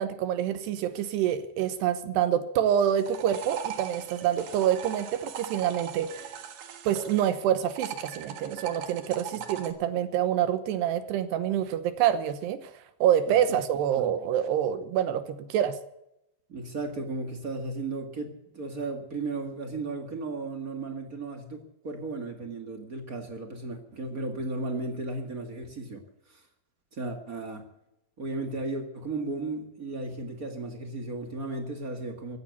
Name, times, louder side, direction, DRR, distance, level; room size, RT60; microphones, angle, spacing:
voice 1, 0.0-6.1 6.9-12.7 13.0-15.8, right 10 dB, 80° right, 10 dB, 3.0 m, -26 dB
sound 1, 2.8-7.3 7.7-9.7, right 9 dB, 60° right, 2.8 m, -39 dB
voice 2, 16.5-26.0 26.3-26.4 26.9-27.7 28.2-32.4, right 3 dB, 45° right, 4 dB, 1.1 m, -35 dB
16.0 x 11.0 x 8.3 m, 0.82 s
omnidirectional pair, 4.9 m